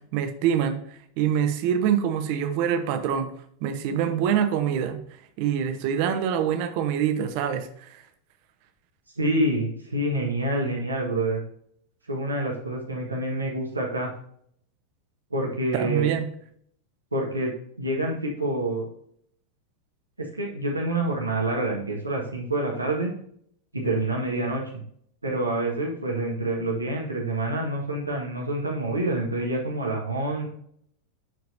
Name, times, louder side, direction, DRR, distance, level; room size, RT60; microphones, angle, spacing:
voice 1, 0.1-3.3 3.6-5.0 5.4-8.0 15.7-16.3, right 8 dB, 45° right, 8 dB, 1.1 m, -25 dB
voice 2, 9.2-11.4 12.1-14.1 15.3-16.2 17.1-17.5 17.8-18.9 20.2-23.1 23.7-24.6 25.2-30.5, right 1 dB, 80° right, -1 dB, 1.6 m, -27 dB
12.5 x 4.6 x 2.7 m, 0.65 s
figure-of-eight pair, 90°, 0 cm